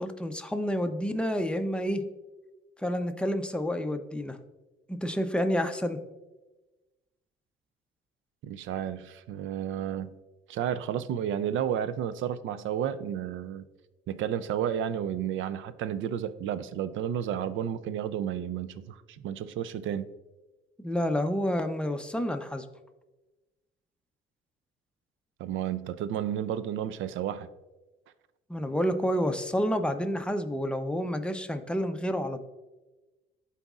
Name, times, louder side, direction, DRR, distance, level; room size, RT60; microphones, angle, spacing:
voice 1, 0.0-2.0 2.8-4.4 4.9-6.0 20.8-22.7 28.5-32.4, equal, 5° left, 6 dB, 0.6 m, -29 dB
voice 2, 8.4-10.2 10.5-13.6 14.1-20.1 25.4-27.5, right 9 dB, 75° right, 14 dB, 0.5 m, -32 dB
12.0 x 4.1 x 2.4 m, 1.1 s
cardioid pair, 90°, 20 cm